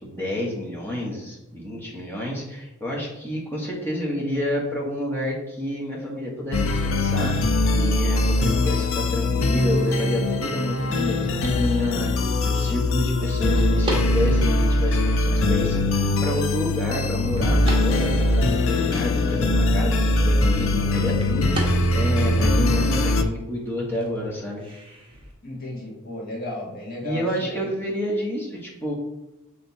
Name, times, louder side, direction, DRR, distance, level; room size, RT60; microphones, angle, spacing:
voice 1, 0.0-7.3 7.7-24.6 27.0-28.9, left 1 dB, 10° left, -4 dB, 1.4 m, -29 dB
sound 1, 6.5-23.2, left 2 dB, 60° left, 0.5 m, -21 dB
sound 2, 9.9-25.3, right 1 dB, 25° right, 1.3 m, -40 dB
voice 2, 25.4-27.7, left 1 dB, 40° left, -4 dB, 1.7 m, -34 dB
6.6 x 3.4 x 4.2 m, 0.97 s
head